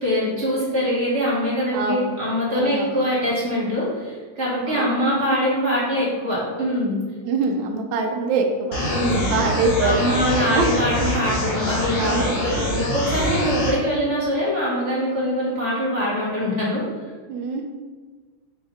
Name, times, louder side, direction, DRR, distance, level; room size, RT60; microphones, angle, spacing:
voice 1, 0.0-7.0 8.9-9.3 9.8-16.8, equal, 45° right, -8 dB, 1.2 m, -23 dB
voice 2, 1.7-2.2 2.5-3.0 4.6-4.9 7.2-10.7 12.0-12.4 17.3-17.7, right 3 dB, 75° right, 3 dB, 1.2 m, -24 dB
sound 1, 8.7-13.7, equal, 70° left, 1.7 m, -25 dB
4.3 x 2.8 x 3.6 m, 1.4 s
omnidirectional pair, 2.3 m